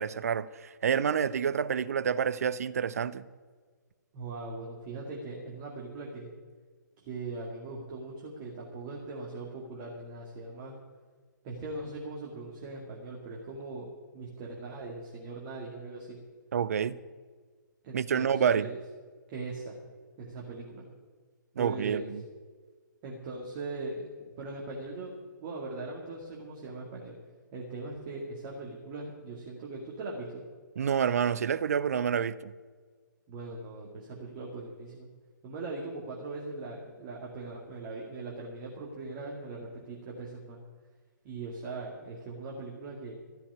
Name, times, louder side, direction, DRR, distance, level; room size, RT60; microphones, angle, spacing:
voice 1, 0.0-3.3 16.5-17.0 17.9-18.7 21.6-22.2 30.8-32.5, right 7 dB, 50° right, 0.6 m, -28 dB
voice 2, 4.1-6.3 7.0-10.7 11.4-13.9 14.1-16.2 17.8-18.8 19.3-19.8 20.2-20.9 21.6-22.1 23.0-27.1 27.5-30.4 33.3-35.1 35.4-40.6 41.2-43.1, right 3 dB, 30° right, 2.2 m, -40 dB
13.5 x 7.0 x 9.7 m
figure-of-eight pair, 130°, 11 cm